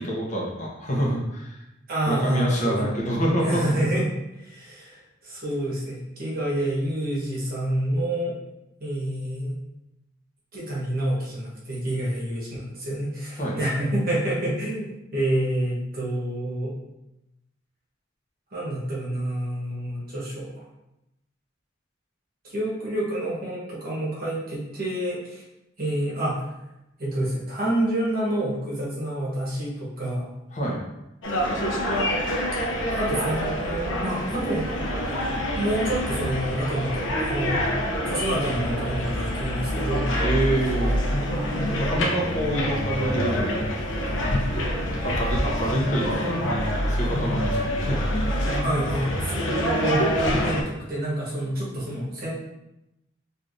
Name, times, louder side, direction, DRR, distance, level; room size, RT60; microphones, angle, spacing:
voice 1, 0.0-1.6 2.1-4.0 13.4-13.6 30.5-30.8 40.2-41.0 41.8-43.6 44.2-44.4 45.0-48.4, right 1 dB, 40° left, -3 dB, 0.7 m, -27 dB
voice 2, 1.9-2.8 3.4-4.1 4.5-8.4 8.8-9.6 10.5-16.7 18.5-20.6 22.4-25.4 25.8-26.4 27.0-30.3 32.9-34.7 35.5-37.7 38.0-40.2 48.6-52.3, right 1 dB, 50° right, -5 dB, 1.0 m, -28 dB
sound 1, 31.2-50.6, equal, 90° left, 0.5 m, -26 dB
3.2 x 2.5 x 2.5 m, 0.90 s
head